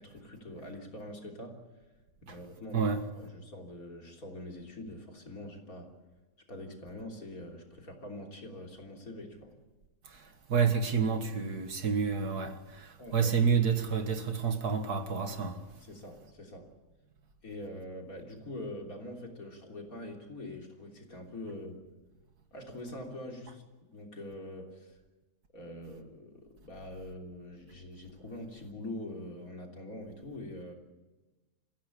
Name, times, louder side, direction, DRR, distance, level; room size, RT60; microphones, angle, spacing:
voice 1, 0.0-1.6 2.2-5.9 6.5-9.5 13.0-13.3 15.8-16.7 17.4-21.8 22.5-23.6 23.9-25.0 25.5-30.7, left 1 dB, 55° left, 3.7 m, -44 dB
voice 2, 10.1-15.6, right 6 dB, 60° right, 2.1 m, -29 dB
28.0 x 15.5 x 8.5 m
omnidirectional pair, 1.9 m